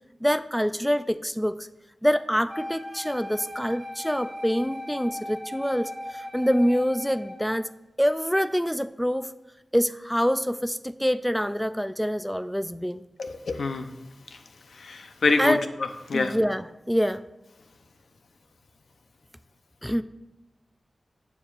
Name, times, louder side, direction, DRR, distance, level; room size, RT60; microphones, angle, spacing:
voice 1, 0.2-1.7 2.0-7.7 8.0-9.3 9.7-13.0 15.4-15.7 16.1-17.2 19.8-20.0, equal, ahead, 13 dB, 0.3 m, -25 dB
Wind instrument woodwind instrument, 2.5-7.5, left 1 dB, 25° right, 2.2 m, -38 dB
voice 2, 13.2-13.9 14.7-15.6 16.1-16.4, left 4 dB, 85° left, 7 dB, 0.6 m, -25 dB
11.5 x 7.1 x 2.5 m, 1.0 s
wide cardioid pair, 80°, 0 cm